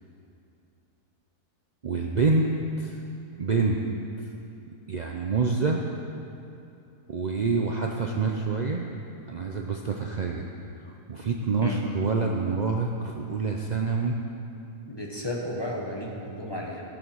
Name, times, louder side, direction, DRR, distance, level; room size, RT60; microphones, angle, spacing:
voice 1, 1.8-2.5 2.8-3.0 3.4-3.8 4.9-5.8 7.1-8.9 9.3-10.5 10.8-14.2, right 4 dB, 65° right, 1 dB, 0.4 m, -27 dB
voice 2, 14.9-16.8, left 1 dB, 15° left, -2 dB, 1.5 m, -33 dB
15.5 x 7.3 x 6.3 m, 2.7 s
omnidirectional pair, 1.7 m